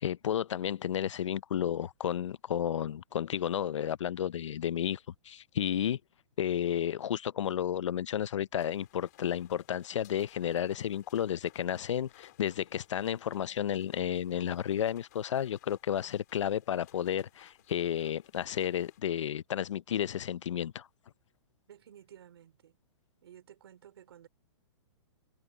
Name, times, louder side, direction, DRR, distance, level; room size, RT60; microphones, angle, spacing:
voice 1, 0.0-5.0 5.2-6.0 6.4-20.9, left 10 dB, 85° left, 0.6 m, -32 dB
sound 1, 8.6-19.0, left 16 dB, 35° left, 3.5 m, -62 dB
voice 2, 21.7-22.8 23.2-24.3, right 10 dB, 60° right, 5.0 m, -54 dB
hypercardioid pair, 175°, 15 cm